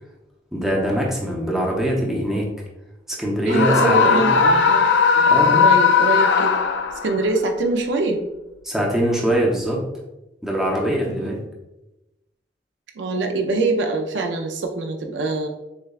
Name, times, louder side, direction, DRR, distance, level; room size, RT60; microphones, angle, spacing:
voice 1, 0.5-2.5 3.1-4.6 5.1-5.6 8.6-9.8 10.4-11.4, equal, ahead, -3 dB, 0.7 m, -23 dB
Screaming, 3.5-7.2, left 6 dB, 65° left, 0.3 m, -17 dB
voice 2, 3.5-4.4 4.7-4.9 5.5-6.5 7.0-8.2 11.1-11.4 13.0-15.5, right 3 dB, 70° right, 4 dB, 0.4 m, -23 dB
6.5 x 2.2 x 2.3 m, 0.98 s
head